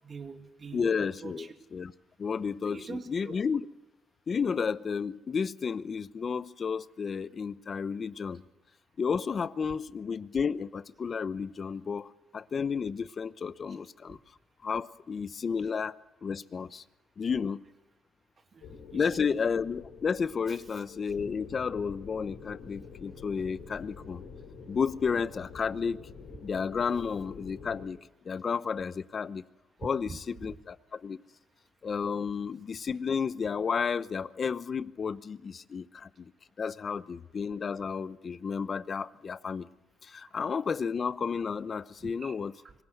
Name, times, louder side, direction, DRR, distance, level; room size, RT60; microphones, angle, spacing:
voice 1, 0.0-1.5 2.7-3.4 18.5-19.3 20.5-20.8 30.1-30.2 30.5-30.6 42.0-42.7, right 5 dB, 40° right, 2.4 m, -45 dB
voice 2, 0.7-1.9 2.2-3.6 4.3-8.4 9.0-14.2 14.6-16.0 16.2-16.8 17.2-17.6 18.9-24.2 24.7-26.0 26.4-28.0 28.2-29.4 29.8-30.1 30.4-31.2 31.8-36.3 36.6-39.7 40.0-42.5, left 6 dB, 45° left, 0.8 m, -32 dB
sound 1, 18.6-27.9, left 5 dB, 90° left, 5.0 m, -47 dB
24.5 x 17.5 x 7.9 m
cardioid pair, 90°, 0 cm